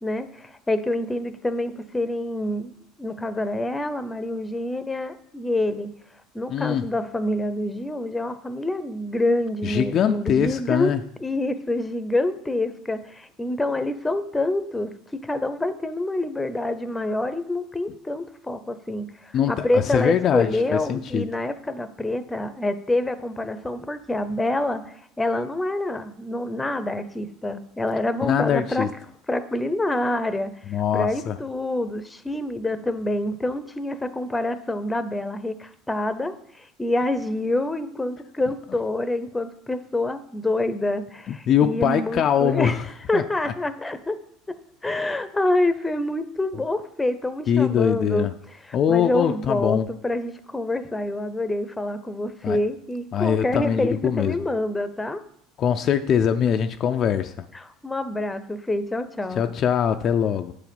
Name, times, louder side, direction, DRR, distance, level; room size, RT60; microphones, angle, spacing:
voice 1, 0.0-2.7 3.0-5.9 6.3-10.9 11.2-28.9 29.3-42.8 43.1-44.2 44.8-48.3 48.7-55.2 57.5-59.5, left 1 dB, 10° left, 11 dB, 0.7 m, -27 dB
voice 2, 6.5-6.9 9.6-11.0 19.3-21.3 28.3-28.9 30.7-31.4 41.3-42.8 43.1-43.2 47.5-48.3 48.7-49.9 52.4-52.6 53.1-54.4 55.6-57.5 59.3-60.5, left 8 dB, 45° left, 7 dB, 0.4 m, -22 dB
8.5 x 4.9 x 5.3 m, 0.68 s
supercardioid pair, 95°, 0 cm